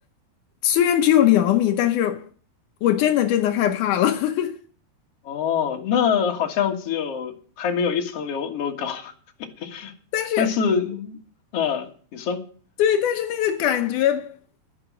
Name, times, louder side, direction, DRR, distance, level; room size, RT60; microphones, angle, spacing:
voice 1, 0.6-2.3 2.8-4.6 10.1-10.5 12.8-14.3, left 11 dB, 85° left, 1.7 m, -20 dB
voice 2, 5.2-9.1 9.4-9.9 10.4-11.2 11.5-12.4, left 7 dB, 50° left, 2.1 m, -25 dB
11.0 x 11.0 x 6.1 m
omnidirectional pair, 4.8 m